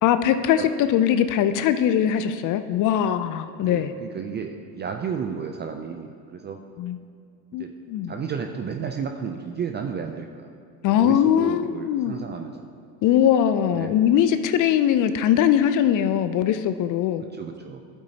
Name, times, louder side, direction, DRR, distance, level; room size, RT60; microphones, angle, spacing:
voice 1, 0.0-3.9 6.8-7.0 7.5-8.1 10.8-12.1 13.0-17.2, left 10 dB, 40° left, 11 dB, 0.4 m, -21 dB
voice 2, 3.6-6.6 7.6-7.7 8.1-10.5 10.9-12.6 13.7-13.9 17.3-17.8, right 6 dB, 25° right, 4 dB, 0.3 m, -32 dB
11.5 x 8.4 x 2.8 m, 2.3 s
supercardioid pair, 95°, 49 cm